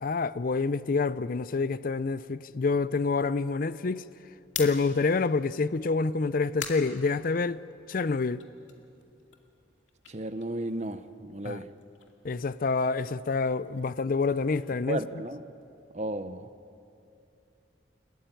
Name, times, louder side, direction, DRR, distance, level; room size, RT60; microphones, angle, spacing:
voice 1, 0.0-4.0 4.6-7.6 7.9-8.5 11.4-11.6 12.2-15.0, left 4 dB, 45° left, 0.5 m, -27 dB
sound 1, 4.5-7.9 8.3-11.2 11.5-15.6, left 8 dB, 80° left, 2.4 m, -45 dB
voice 2, 10.1-11.7 14.9-15.4 15.9-16.5, right 1 dB, 35° right, 0.8 m, -34 dB
30.0 x 14.5 x 9.2 m
head